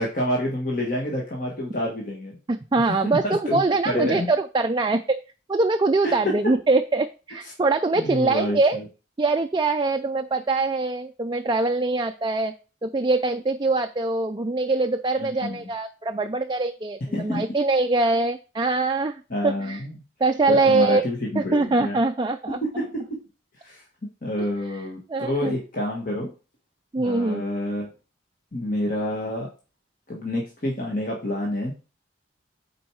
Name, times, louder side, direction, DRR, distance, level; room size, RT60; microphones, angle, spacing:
voice 1, 0.0-2.4 3.0-4.3 6.0-6.1 6.4-6.6 8.0-8.8 15.2-15.7 17.1-17.4 19.3-20.0 20.5-21.9 22.5-23.2 23.6-23.8 24.2-26.3 27.0-27.9 28.5-29.5 30.1-31.8, left 1 dB, 45° left, -2 dB, 1.5 m, -28 dB
voice 2, 2.5-5.2 5.5-8.8 9.2-12.5 12.8-19.8 20.2-21.0 21.4-22.6 24.4-24.5 25.1-25.5 26.9-27.4, right 3 dB, 25° right, 6 dB, 0.4 m, -23 dB
9.0 x 4.5 x 4.8 m, 0.34 s
head